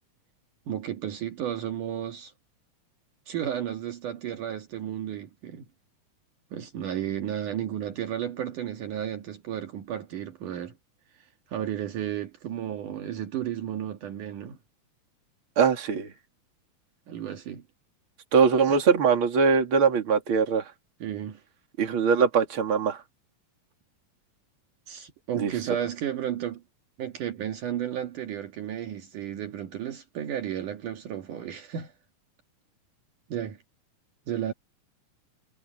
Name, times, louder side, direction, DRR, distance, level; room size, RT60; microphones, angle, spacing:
voice 1, 0.7-2.3 3.3-5.7 6.5-10.7 11.5-14.6 17.1-17.6 18.7-18.8 21.0-21.4 24.9-26.6 27.0-31.9 33.3-33.6 34.3-34.5, right 10 dB, 65° right, 3.1 m, -33 dB
voice 2, 15.6-16.1 18.3-20.6 21.8-23.0 25.3-25.5, right 5 dB, 40° right, 3.1 m, -22 dB
omnidirectional pair, 4.0 m